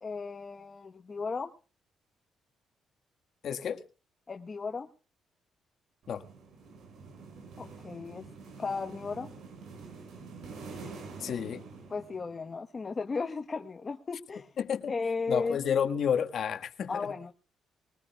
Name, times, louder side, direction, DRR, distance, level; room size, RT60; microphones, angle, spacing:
voice 1, 0.0-1.5 4.3-4.9 7.6-8.3 8.6-9.3 11.9-14.5 14.9-15.6 16.9-17.3, left 4 dB, 35° left, 1.1 m, -35 dB
voice 2, 3.4-3.8 6.1-6.2 11.2-11.6 14.6-14.9 15.3-17.0, left 8 dB, 60° left, 1.5 m, -30 dB
sound 1, 6.0-12.5, right 4 dB, 75° right, 5.9 m, -47 dB
22.0 x 19.0 x 2.3 m
cardioid pair, 90°, 0 cm